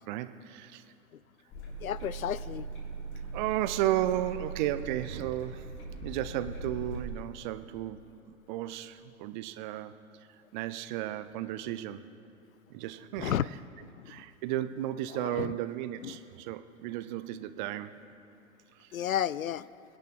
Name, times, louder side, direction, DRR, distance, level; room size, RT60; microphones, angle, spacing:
voice 1, 0.1-0.8 3.3-5.7 6.0-9.9 10.5-12.0 12.7-13.3 14.1-18.0 18.8-18.9, right 13 dB, 35° right, 12 dB, 0.6 m, -34 dB
sound 1, 1.5-7.0, right 3 dB, 30° left, 2.5 m, -40 dB
voice 2, 1.8-2.7 13.2-13.5 13.8-14.1 15.1-15.5 16.0-16.2 18.9-19.7, left 10 dB, 80° left, 19 dB, 0.5 m, -32 dB
24.5 x 10.5 x 3.8 m, 2.6 s
figure-of-eight pair, 100°, 41 cm